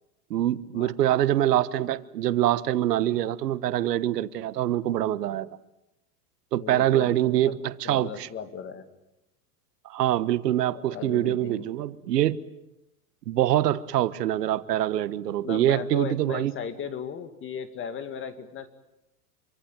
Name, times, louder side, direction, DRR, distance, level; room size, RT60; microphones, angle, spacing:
voice 1, 0.3-5.5 6.5-8.3 9.8-12.4 13.3-16.5, right 12 dB, 85° right, 15 dB, 1.4 m, -25 dB
voice 2, 6.5-7.5 7.8-8.9 10.7-11.7 15.3-18.7, left 7 dB, 25° left, 10 dB, 2.3 m, -37 dB
26.5 x 24.5 x 9.0 m, 0.88 s
supercardioid pair, 135°, 47 cm